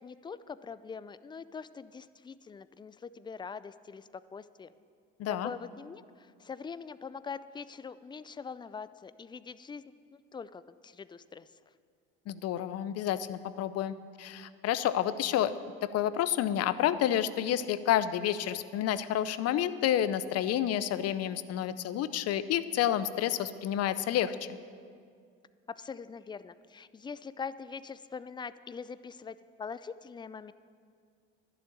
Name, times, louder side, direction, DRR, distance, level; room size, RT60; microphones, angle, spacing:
voice 1, 0.0-4.7 5.3-9.8 10.3-11.5 25.7-30.5, left 5 dB, 15° left, 15 dB, 0.4 m, -43 dB
voice 2, 5.2-5.5 12.3-15.5 15.8-24.4, left 11 dB, 55° left, 14 dB, 0.7 m, -29 dB
12.0 x 7.2 x 9.1 m, 2.2 s
supercardioid pair, 80°, 30 cm